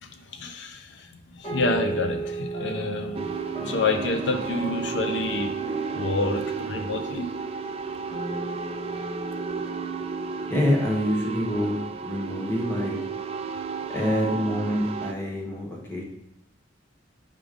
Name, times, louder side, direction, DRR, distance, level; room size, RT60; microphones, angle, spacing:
voice 1, 0.0-5.5 5.9-7.3, left 3 dB, 65° left, 5 dB, 0.6 m, -28 dB
sound 1, 1.4-11.2, right 3 dB, 35° left, 2.0 m, -36 dB
sound 2, 3.1-15.1, right 5 dB, 30° right, 0.3 m, -33 dB
voice 2, 10.5-11.8 12.0-13.0 13.9-16.0, equal, 10° left, -2 dB, 1.1 m, -26 dB
4.9 x 3.8 x 5.1 m, 0.82 s
head